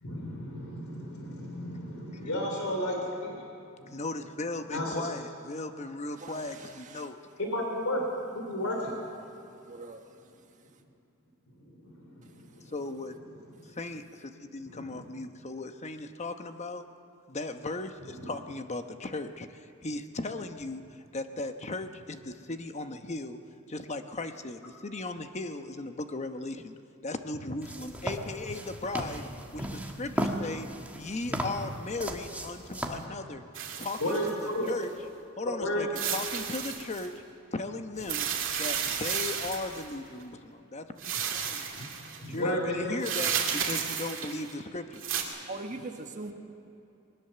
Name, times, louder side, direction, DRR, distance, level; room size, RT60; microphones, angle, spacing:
voice 1, 0.0-3.5 3.8-3.9 4.7-5.1 7.4-8.0 8.3-9.0 11.6-12.7 14.6-15.0 18.2-18.3 34.0-34.7 35.6-35.9 41.8-41.9 42.2-43.0, left 1 dB, 85° left, 1 dB, 3.4 m, -33 dB
voice 2, 3.9-7.2 12.7-13.1 13.7-16.9 17.3-23.4 23.7-26.8 27.0-30.7 30.9-33.4 33.8-34.9 35.4-35.9 36.1-37.1 37.5-38.3 38.5-41.6 42.3-45.1, left 2 dB, 35° left, 8 dB, 1.0 m, -37 dB
voice 3, 6.2-7.1 9.6-10.2 12.2-12.3 45.5-46.3, right 2 dB, 35° right, 3 dB, 1.5 m, -42 dB
sound 1, 27.6-33.1, right 1 dB, 5° right, 1.5 m, -36 dB
sound 2, 33.5-34.8 36.0-37.1 38.0-39.9 41.0-42.2 43.0-44.5 44.9-45.2, right 8 dB, 65° right, 2.5 m, -32 dB
21.0 x 19.5 x 6.8 m, 2.7 s
head